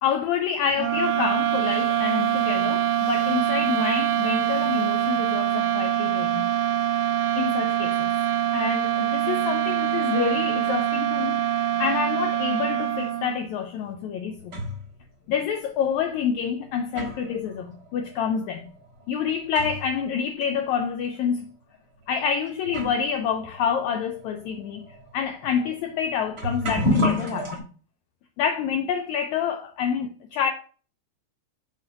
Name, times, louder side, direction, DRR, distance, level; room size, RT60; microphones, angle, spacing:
voice 1, 0.0-6.4 7.4-8.1 8.5-14.6 15.3-18.7 19.1-21.5 22.1-27.6 28.4-30.5, left 7 dB, 85° left, 1.6 m, -27 dB
sound 1, 0.8-13.5, right 11 dB, 80° right, 1.9 m, -24 dB
sound 2, 13.8-14.9 15.8-15.9 16.6-20.0 20.3-20.4 21.2-21.4 22.2-22.3 22.7-27.6, left 1 dB, 45° right, 1.3 m, -31 dB
7.8 x 3.0 x 5.0 m
omnidirectional pair, 3.8 m